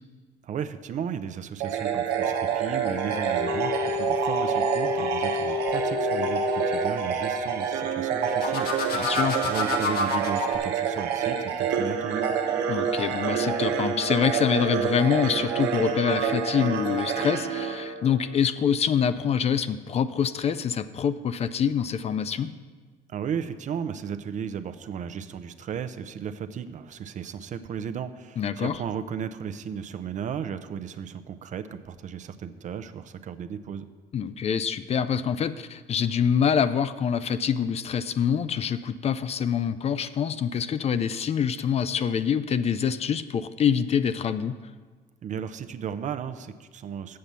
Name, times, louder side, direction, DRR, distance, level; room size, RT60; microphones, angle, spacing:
voice 1, 0.4-12.3 23.1-33.8 45.2-47.2, right 7 dB, 45° right, 10 dB, 0.5 m, -35 dB
sound 1, 1.6-18.4, right 7 dB, 90° right, 1.1 m, -27 dB
sound 2, 3.1-6.9 8.3-10.6, left 5 dB, 65° left, 1.3 m, -30 dB
voice 2, 8.9-9.4 12.7-22.5 28.4-28.7 34.1-44.5, left 7 dB, 40° left, 13 dB, 0.4 m, -25 dB
7.6 x 7.0 x 6.7 m, 1.5 s
cardioid pair, 110°, 17 cm